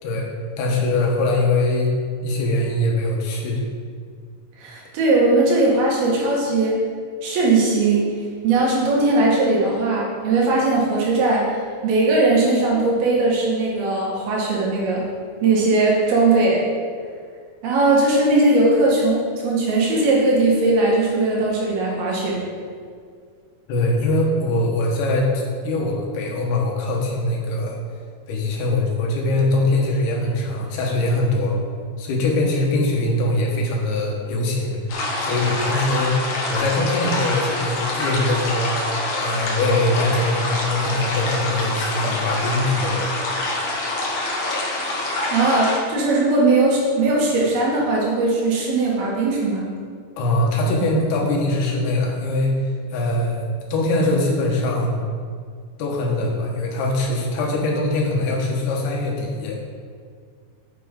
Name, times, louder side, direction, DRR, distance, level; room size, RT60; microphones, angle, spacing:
voice 1, 0.6-1.9 2.2-3.6 23.7-27.8 28.3-31.6 32.0-34.8 35.2-36.2 36.5-38.9 39.2-43.1 50.2-55.1 55.8-59.6, left 2 dB, 80° left, -1 dB, 3.4 m, -22 dB
voice 2, 4.6-6.8 7.2-8.1 8.4-15.1 15.4-16.7 17.6-22.4 45.3-49.7, right 2 dB, 75° right, -3 dB, 3.5 m, -19 dB
sound 1, 34.9-45.8, left 2 dB, 65° left, 2.5 m, -26 dB
9.4 x 8.1 x 3.8 m, 2.1 s
omnidirectional pair, 4.4 m